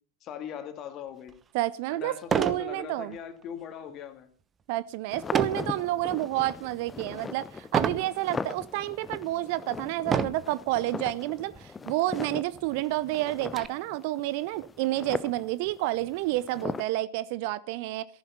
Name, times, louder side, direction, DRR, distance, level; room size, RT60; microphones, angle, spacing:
voice 1, 0.2-1.3 1.9-4.3, left 9 dB, 35° left, 2.3 m, -40 dB
sound 1, 1.3-1.4 2.2-2.7 3.1-3.4 5.3-5.7 6.3-6.7 7.7-8.1 8.8-8.9 10.0-10.5 11.5-11.7 12.0-12.1 12.5-13.7, right 6 dB, 20° right, 1.0 m, -28 dB
voice 2, 1.5-3.2 4.7-18.1, right 16 dB, 45° right, 0.6 m, -30 dB
sound 2, 5.1-16.9, left 4 dB, 15° left, 0.6 m, -39 dB
14.5 x 11.5 x 5.6 m
figure-of-eight pair, 90°, 0 cm